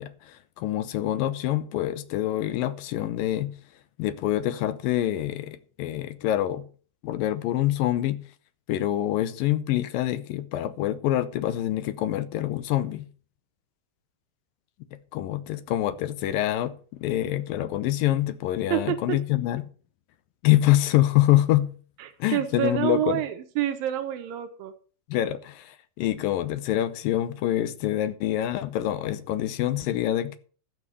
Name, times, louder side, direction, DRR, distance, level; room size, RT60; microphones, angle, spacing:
voice 1, 0.0-3.5 4.0-6.7 7.0-8.2 8.7-13.1 15.1-19.6 20.4-21.7 22.2-23.2 25.1-30.4, left 13 dB, 75° left, 2.4 m, -26 dB
voice 2, 18.7-19.2 22.0-24.7, right 11 dB, 75° right, 2.8 m, -28 dB
12.5 x 7.3 x 6.7 m
omnidirectional pair, 4.2 m